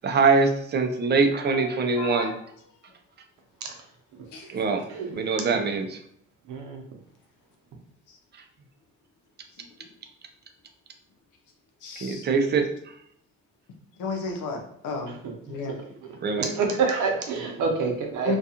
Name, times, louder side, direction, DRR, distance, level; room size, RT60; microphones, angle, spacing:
voice 1, 0.0-2.3 4.5-4.8 5.2-6.0 12.0-12.7 16.2-16.5, right 4 dB, 35° right, 5 dB, 0.4 m, -23 dB
voice 2, 1.5-2.5 4.3-4.5 8.1-8.2 11.8-12.2 14.0-15.2 15.5-15.8 18.2-18.4, left 4 dB, 85° left, 2 dB, 0.7 m, -33 dB
voice 3, 6.5-6.8 16.4-18.4, right 4 dB, 75° right, 3 dB, 0.7 m, -26 dB
2.4 x 2.3 x 2.8 m, 0.67 s
cardioid pair, 90°, 30 cm